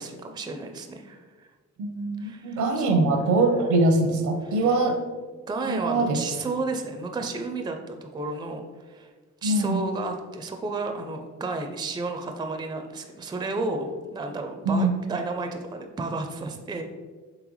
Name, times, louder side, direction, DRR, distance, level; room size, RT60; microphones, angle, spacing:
voice 1, 0.0-1.5 2.2-2.8 4.4-4.8 5.5-9.1 9.4-16.8, right 3 dB, 15° right, 4 dB, 0.4 m, -32 dB
voice 2, 1.8-5.0 5.7-6.2 9.4-9.8 14.7-14.9, right 2 dB, 75° right, 4 dB, 0.7 m, -23 dB
3.9 x 3.3 x 3.1 m, 1.4 s
cardioid pair, 90°, 30 cm